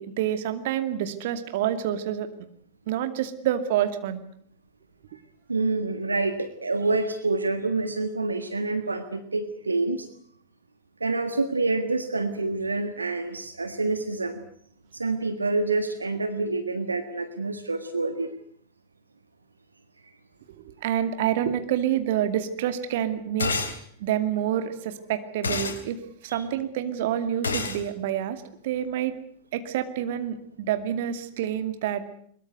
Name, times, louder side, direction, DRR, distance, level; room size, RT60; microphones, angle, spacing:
voice 1, 0.0-2.3 2.9-4.2 20.6-23.5 24.0-29.1 29.5-32.0, right 10 dB, 55° right, 9 dB, 2.4 m, -28 dB
voice 2, 5.5-10.1 11.0-14.4 14.9-18.3 26.3-26.4, right 3 dB, 80° right, 10 dB, 1.7 m, -27 dB
sound 1, 23.4-23.8 25.4-25.8 27.4-27.8, left 4 dB, 70° left, 3.6 m, -27 dB
23.0 x 22.0 x 8.1 m, 0.64 s
figure-of-eight pair, 90°, 0 cm